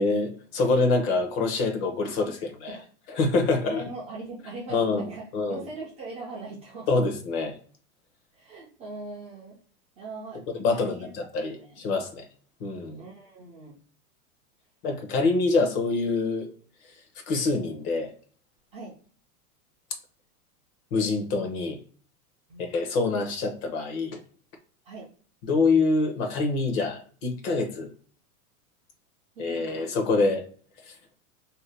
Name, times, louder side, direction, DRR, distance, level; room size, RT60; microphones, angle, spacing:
voice 1, 0.0-2.8 3.1-3.8 4.7-5.6 6.9-7.6 10.5-12.2 12.6-13.0 14.8-16.5 17.3-18.1 20.9-21.8 22.6-24.2 25.4-27.9 29.4-30.5 30.8-30.9, left 3 dB, 40° left, 0.8 m, -26 dB
voice 2, 3.6-6.9 8.3-9.6 10.0-10.4 10.7-11.1 11.4-11.8 13.0-13.8 18.7-19.0 22.5-22.6 24.8-25.1 29.4-30.0, right 3 dB, 15° right, 0.4 m, -40 dB
2.8 x 2.1 x 3.2 m
supercardioid pair, 145°, 44 cm